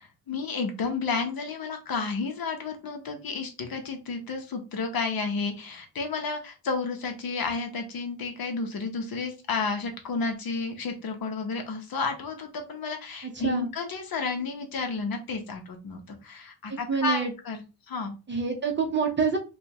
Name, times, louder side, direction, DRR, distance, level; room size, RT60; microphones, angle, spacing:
voice 1, 0.0-18.1, left 4 dB, 55° left, 5 dB, 0.8 m, -31 dB
voice 2, 13.2-13.7 16.7-17.3 18.3-19.4, right 5 dB, 25° right, 2 dB, 0.7 m, -27 dB
4.9 x 2.3 x 2.8 m, 0.30 s
wide cardioid pair, 165°, 44 cm